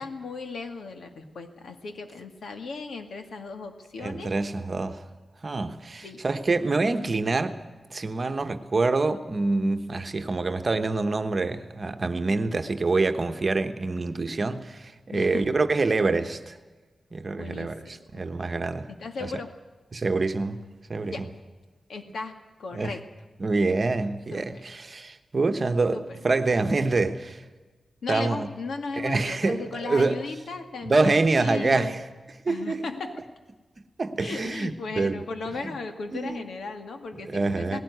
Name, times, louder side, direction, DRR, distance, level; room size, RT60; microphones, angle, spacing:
voice 1, 0.0-4.3 6.0-6.3 15.1-15.6 17.4-17.7 18.9-19.5 21.1-21.3 21.9-23.0 24.3-24.6 25.6-26.2 28.0-32.0 32.5-33.2 34.2-37.8, left 4 dB, 85° left, 6 dB, 2.2 m, -36 dB
voice 2, 4.0-5.0 5.4-7.6 7.9-16.6 17.1-18.9 19.2-19.3 19.9-20.6 20.9-21.3 22.7-22.9 23.4-27.4 28.1-28.5 28.9-30.2 30.8-32.0 32.4-32.8 34.0-35.2 36.1-36.4 37.2-37.8, right 3 dB, 35° right, 8 dB, 1.1 m, -26 dB
18.5 x 17.5 x 9.4 m, 1.3 s
wide cardioid pair, 165°, 0 cm